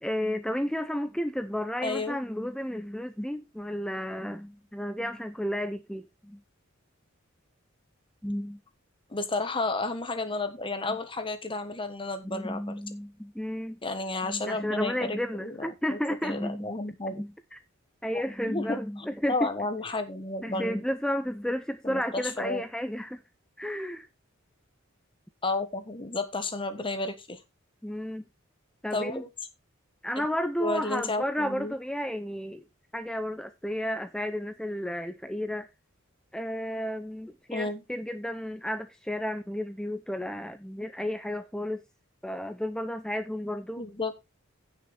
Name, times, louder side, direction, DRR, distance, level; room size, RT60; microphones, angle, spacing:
voice 1, 0.0-6.4 8.2-8.6 10.9-11.0 12.2-13.8 14.2-16.7 17.1-17.6 18.0-19.5 20.4-23.2 23.6-24.1 27.8-28.2 28.8-29.2 30.0-32.7 32.9-35.7 36.3-41.8 42.2-43.8, equal, 5° left, 0.6 m, -32 dB
voice 2, 1.8-2.2 9.1-12.6 13.8-17.2 18.1-18.8 19.3-20.8 21.8-22.6 25.4-27.4 28.9-29.3 30.2-30.3 30.6-31.7 37.5-37.8 43.8-44.1, left 2 dB, 25° left, 1.3 m, -32 dB
16.5 x 6.2 x 3.3 m
head